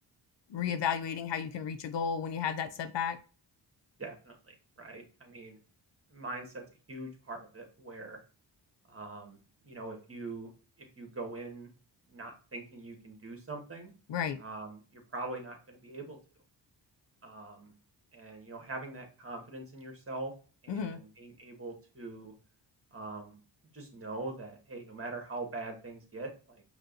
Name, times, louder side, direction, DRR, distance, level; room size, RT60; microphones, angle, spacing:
voice 1, 0.5-3.2 14.1-14.4 20.7-21.0, left 7 dB, 65° left, 9 dB, 0.6 m, -33 dB
voice 2, 4.0-5.6 6.1-6.6 6.9-8.2 8.9-9.4 9.6-10.5 11.0-11.7 12.1-13.9 14.4-16.2 17.2-17.7 18.1-20.3 20.6-22.3 22.9-23.3 23.7-26.6, right 2 dB, 30° right, 3 dB, 1.6 m, -42 dB
5.3 x 3.1 x 2.6 m, 0.37 s
cardioid pair, 55°, 47 cm